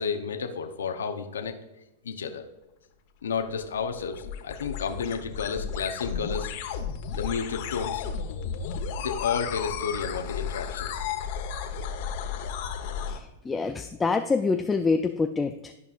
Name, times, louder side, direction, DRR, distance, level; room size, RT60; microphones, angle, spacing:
voice 1, 0.0-1.5 2.0-2.4 3.2-6.5 7.2-8.1 9.0-11.1, left 6 dB, 90° left, 5 dB, 0.8 m, -31 dB
sound 1, 3.3-13.2, left 7 dB, 55° left, 1.1 m, -33 dB
voice 2, 13.1-15.7, left 4 dB, 15° left, 6 dB, 0.4 m, -26 dB
13.0 x 5.4 x 2.5 m, 0.97 s
hypercardioid pair, 120°, 0 cm